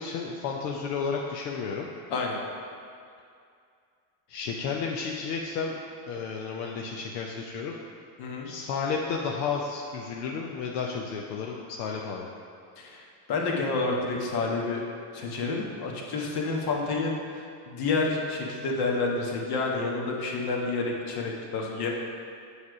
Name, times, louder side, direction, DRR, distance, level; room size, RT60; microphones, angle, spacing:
voice 1, 0.0-1.9 4.3-5.7 6.1-7.8 8.4-12.3, left 5 dB, 75° left, 0 dB, 0.8 m, -32 dB
voice 2, 8.2-8.5 12.8-14.8 15.1-21.9, left 3 dB, 50° left, -1 dB, 1.4 m, -29 dB
7.2 x 3.3 x 6.0 m, 2.3 s
supercardioid pair, 120°, 49 cm